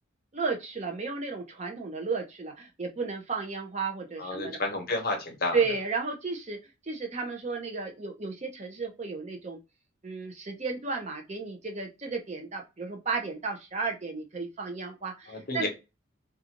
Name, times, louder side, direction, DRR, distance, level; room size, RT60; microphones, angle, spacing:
voice 1, 0.3-4.6 5.5-6.6 6.8-9.6 10.0-15.7, right 4 dB, 35° right, 2 dB, 0.5 m, -33 dB
voice 2, 4.2-5.6 15.3-15.7, left 2 dB, 45° left, 2 dB, 0.9 m, -31 dB
2.5 x 2.3 x 2.8 m, 0.26 s
head